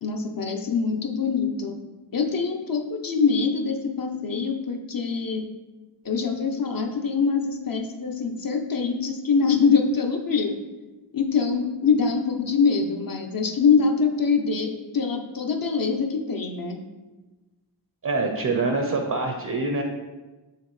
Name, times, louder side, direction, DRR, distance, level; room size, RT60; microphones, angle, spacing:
voice 1, 0.0-1.8 2.1-5.4 6.0-10.6 11.1-16.8, left 5 dB, 45° left, 3 dB, 0.7 m, -24 dB
voice 2, 18.0-19.8, right 3 dB, 40° right, 3 dB, 0.7 m, -25 dB
8.3 x 3.6 x 3.2 m, 1.2 s
wide cardioid pair, 100°, 47 cm